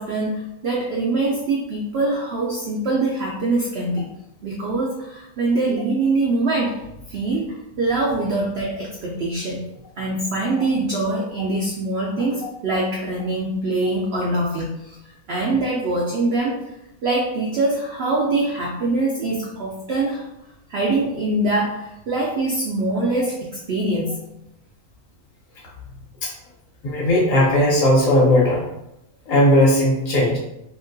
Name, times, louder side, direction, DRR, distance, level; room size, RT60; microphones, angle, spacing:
voice 1, 0.0-4.1 4.4-9.7 10.0-15.0 15.3-16.8 17.0-20.3 20.7-24.3, right 2 dB, 75° right, -3 dB, 0.5 m, -23 dB
voice 2, 26.8-28.6 29.3-30.4, left 1 dB, 60° left, -4 dB, 1.3 m, -17 dB
2.9 x 2.8 x 2.6 m, 0.85 s
omnidirectional pair, 1.6 m